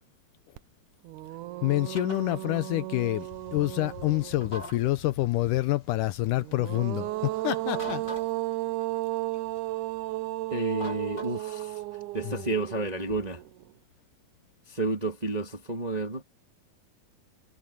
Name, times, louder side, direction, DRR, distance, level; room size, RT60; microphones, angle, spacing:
sound 1, 0.6-0.7 1.0-4.7 6.4-13.6, right 17 dB, 75° right, 2.0 m, -34 dB
voice 1, 1.6-8.0 12.2-12.4, left 17 dB, 75° left, 2.1 m, -27 dB
sound 2, 2.0-2.2 4.4-4.8 7.7-8.3 10.8-11.6, left 1 dB, 30° left, 7.4 m, -40 dB
sound 3, 3.2-8.4, left 4 dB, 60° left, 5.4 m, -50 dB
voice 2, 10.5-11.8 12.1-13.4 14.7-16.2, right 2 dB, 20° right, 1.2 m, -31 dB
omnidirectional pair, 4.0 m